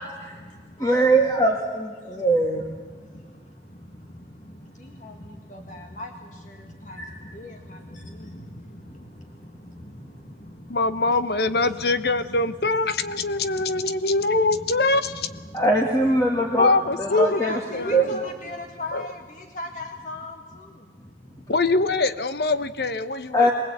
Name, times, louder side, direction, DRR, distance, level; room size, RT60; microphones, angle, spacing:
voice 1, 0.0-0.4 0.8-2.6 7.0-7.1 15.5-16.7 17.0-17.6 17.9-18.0 23.3-23.5, right 1 dB, 20° left, 0 dB, 2.1 m, -21 dB
voice 2, 4.4-9.1 9.6-10.1 10.4-10.5 10.9-15.7 16.4-20.7, left 1 dB, 45° left, 4 dB, 1.8 m, -39 dB
voice 3, 10.7-15.3 16.6-18.1 18.9-19.0 21.5-23.5, left 3 dB, 60° left, 12 dB, 1.1 m, -23 dB
24.0 x 20.0 x 8.7 m, 1.5 s
head